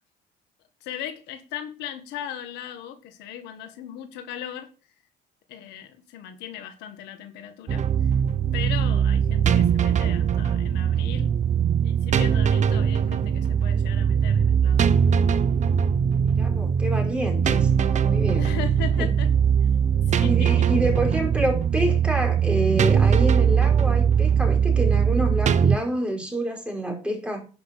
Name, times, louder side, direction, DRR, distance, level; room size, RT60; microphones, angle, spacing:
voice 1, 0.8-4.7 5.5-7.8 8.5-11.3 11.8-14.9 18.4-19.3 20.2-20.7, left 10 dB, 90° left, 7 dB, 1.7 m, -37 dB
sound 1, 7.7-25.8, right 7 dB, 45° right, 0.9 m, -21 dB
voice 2, 16.4-18.6 19.0-19.1 20.2-27.4, right 1 dB, 5° right, 1 dB, 4.7 m, -28 dB
11.0 x 6.0 x 6.6 m, 0.35 s
cardioid pair, 110°, 17 cm